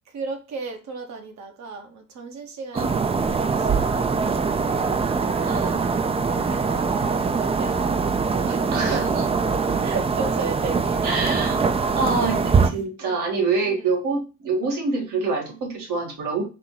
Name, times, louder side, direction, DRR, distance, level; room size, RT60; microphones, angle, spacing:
voice 1, 0.1-4.9 5.5-9.0 9.5-11.5 13.0-13.3 13.6-13.9, right 4 dB, 65° right, 4 dB, 1.1 m, -36 dB
sound 1, 2.7-12.7, right 5 dB, 20° right, 0.4 m, -23 dB
voice 2, 5.4-5.8 8.7-9.0 11.0-11.6 11.9-16.4, right 4 dB, 85° right, -2 dB, 1.9 m, -26 dB
4.2 x 2.7 x 3.8 m, 0.32 s
cardioid pair, 90°, 30 cm